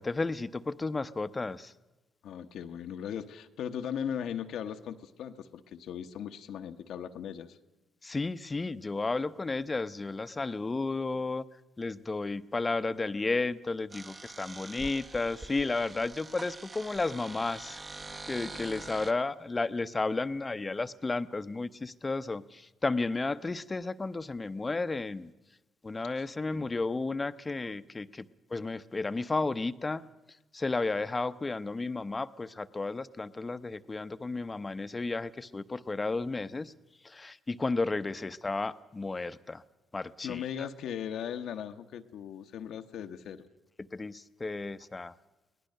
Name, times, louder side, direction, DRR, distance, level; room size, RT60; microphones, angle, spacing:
voice 1, 0.0-1.7 8.0-11.4 11.8-17.8 18.2-25.3 25.8-30.0 30.5-36.7 37.0-39.6 39.9-40.7 43.8-45.1, left 3 dB, 25° left, 13 dB, 0.8 m, -33 dB
voice 2, 2.2-7.6 26.2-26.7 40.2-43.5, left 8 dB, 70° left, 6 dB, 1.0 m, -38 dB
sound 1, 13.9-19.1, right 3 dB, 30° right, 1.3 m, -45 dB
23.0 x 18.0 x 6.6 m, 1.1 s
hypercardioid pair, 55°, 0 cm